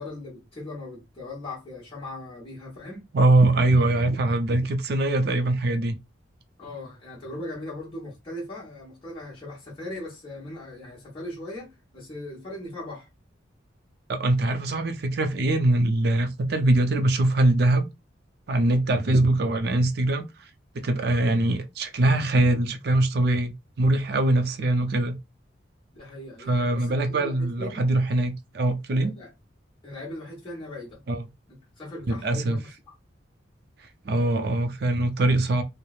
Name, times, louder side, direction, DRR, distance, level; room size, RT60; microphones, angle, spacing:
voice 1, 0.0-3.1 6.6-13.1 24.6-24.8 25.9-27.9 29.0-29.3 29.8-31.0 31.5-32.9, left 1 dB, 25° left, 1.0 m, -39 dB
voice 2, 3.1-6.0 14.1-17.9 18.5-20.2 20.8-25.2 26.5-29.1 31.1-31.2 32.2-32.6 34.0-35.6, right 2 dB, 55° right, 0.4 m, -22 dB
3.0 x 2.0 x 2.3 m
head